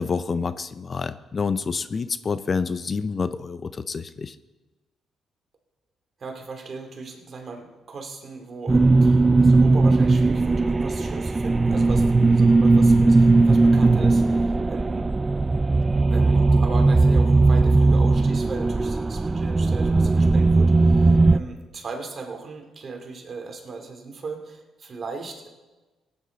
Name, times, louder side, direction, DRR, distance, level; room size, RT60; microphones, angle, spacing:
voice 1, 0.0-4.4, left 5 dB, 40° left, 13 dB, 0.5 m, -28 dB
voice 2, 6.2-15.1 16.1-25.5, right 4 dB, 45° right, 3 dB, 2.5 m, -37 dB
sound 1, 8.7-21.4, right 3 dB, 20° right, 0.4 m, -18 dB
18.0 x 9.7 x 4.0 m, 1.2 s
cardioid pair, 90°, 0 cm